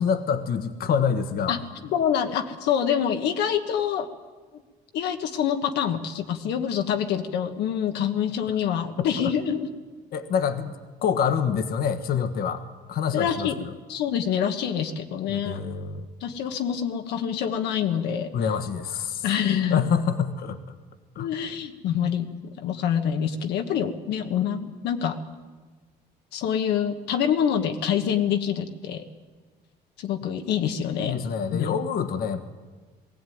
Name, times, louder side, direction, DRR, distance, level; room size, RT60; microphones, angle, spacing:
voice 1, 0.0-1.6 9.2-9.3 10.1-12.6 12.9-13.7 15.3-16.1 18.3-19.3 19.7-20.6 21.1-21.3 31.0-32.4, left 7 dB, 65° left, 10 dB, 1.4 m, -26 dB
voice 2, 1.5-4.1 4.9-9.7 13.1-13.6 13.9-15.6 16.2-18.3 19.2-19.8 21.2-25.2 26.3-29.0 30.0-31.2 31.5-31.7, left 8 dB, 80° left, 6 dB, 1.4 m, -26 dB
20.0 x 15.5 x 9.4 m, 1.4 s
cardioid pair, 110°, 17 cm